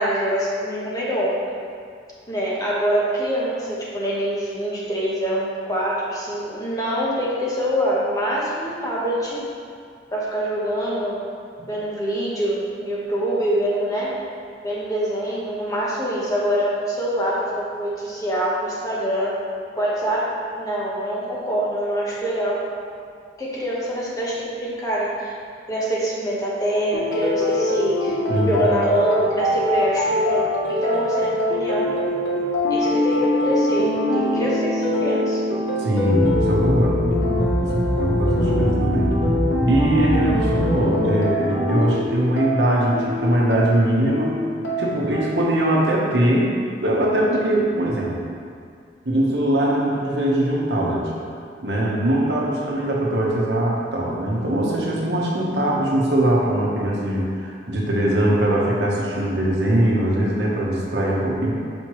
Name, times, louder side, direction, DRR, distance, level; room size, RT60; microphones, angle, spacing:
voice 1, 0.0-1.4 2.3-9.4 10.1-11.2 11.7-14.2 14.6-19.4 19.8-20.3 20.5-22.7 23.4-25.3 25.7-28.2 28.5-31.9 32.7-35.4, right 1 dB, 20° left, -6 dB, 1.0 m, -25 dB
sound 1, 26.9-45.2, left 1 dB, 75° left, 0.9 m, -23 dB
voice 2, 28.3-28.7 35.8-37.0 37.6-39.1 39.6-44.4 44.8-48.2 49.0-51.1 51.6-61.5, right 1 dB, 65° right, -4 dB, 1.0 m, -21 dB
sound 2, 36.2-40.8, equal, 10° right, 1.4 m, -24 dB
6.4 x 5.2 x 3.1 m, 2.2 s
head